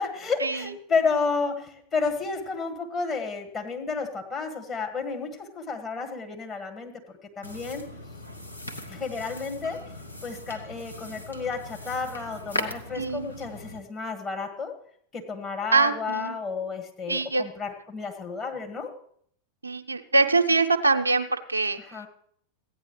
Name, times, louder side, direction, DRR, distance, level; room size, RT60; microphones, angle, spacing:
voice 1, 0.0-6.9 7.4-7.9 8.9-9.8 10.2-14.7 15.1-18.9 21.8-22.1, left 4 dB, 25° left, 3 dB, 1.8 m, -31 dB
sound 1, 7.4-13.8, left 1 dB, 85° left, 1.0 m, -38 dB
voice 2, 13.0-13.3 15.7-16.3 17.1-17.4 19.6-21.8, right 3 dB, 80° right, 7 dB, 0.6 m, -23 dB
15.5 x 9.5 x 3.2 m, 0.63 s
figure-of-eight pair, 90°, 0 cm